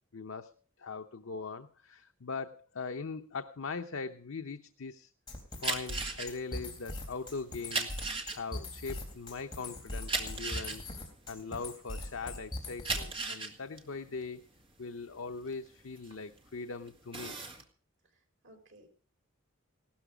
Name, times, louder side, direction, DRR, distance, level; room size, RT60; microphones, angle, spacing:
voice 1, 0.1-0.5 0.8-5.1 5.6-8.1 8.3-10.8 11.3-14.5 14.8-17.4, left 4 dB, 80° left, 7 dB, 0.8 m, -41 dB
sound 1, 5.3-13.3, left 2 dB, 20° left, 4.0 m, -41 dB
sound 2, 5.5-12.1 12.6-16.5 16.9-17.6, right 3 dB, 25° right, 2.0 m, -37 dB
voice 2, 18.0-18.9, right 1 dB, 70° right, 3 dB, 4.9 m, -59 dB
17.5 x 13.0 x 5.0 m, 0.39 s
head